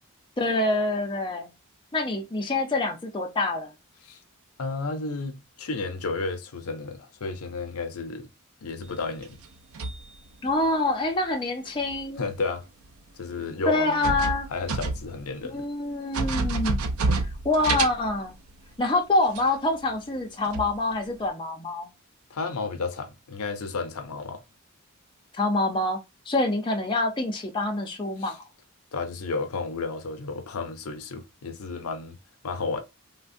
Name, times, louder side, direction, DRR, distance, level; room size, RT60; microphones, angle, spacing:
voice 1, 0.4-1.5 1.9-3.7 10.4-12.2 13.7-14.5 15.4-16.8 17.4-18.4 18.8-21.9 25.4-26.0 26.3-28.5, left 2 dB, 20° left, 0.5 m, -26 dB
voice 2, 4.6-8.3 8.6-9.4 12.2-12.6 13.2-14.1 14.5-15.7 22.3-24.4 28.2-28.4 28.9-32.2 32.4-32.8, left 4 dB, 80° left, 0.5 m, -32 dB
sound 1, 9.0-10.7 11.8-12.0 12.9-13.0 13.9-15.3 15.6-15.7 16.1-18.6 19.4-19.5 19.9-20.1 20.5-21.2, right 3 dB, 70° right, 0.4 m, -29 dB
3.3 x 2.1 x 2.5 m
head